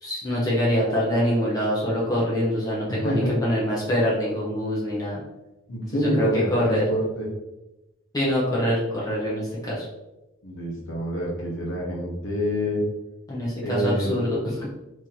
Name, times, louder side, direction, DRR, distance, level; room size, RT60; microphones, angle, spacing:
voice 1, 0.0-5.2 6.0-6.8 8.1-9.9 13.3-14.7, equal, 20° left, -6 dB, 0.6 m, -25 dB
voice 2, 5.7-7.3 10.4-12.8 13.6-14.2, equal, 75° left, -3 dB, 1.0 m, -27 dB
3.0 x 2.8 x 3.8 m, 0.98 s
head